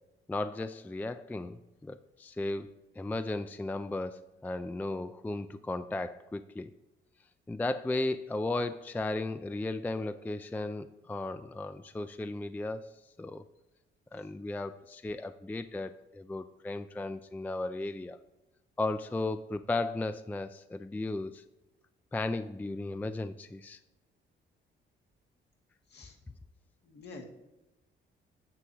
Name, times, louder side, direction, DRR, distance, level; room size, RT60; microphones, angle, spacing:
voice 1, 0.3-6.7 7.5-13.4 14.1-18.2 18.8-21.4 22.1-23.8, left 2 dB, 10° left, 11 dB, 0.3 m, -35 dB
voice 2, 26.8-27.2, left 3 dB, 60° left, 1 dB, 1.9 m, -47 dB
9.8 x 7.6 x 2.9 m, 1.0 s
cardioid pair, 90°, 20 cm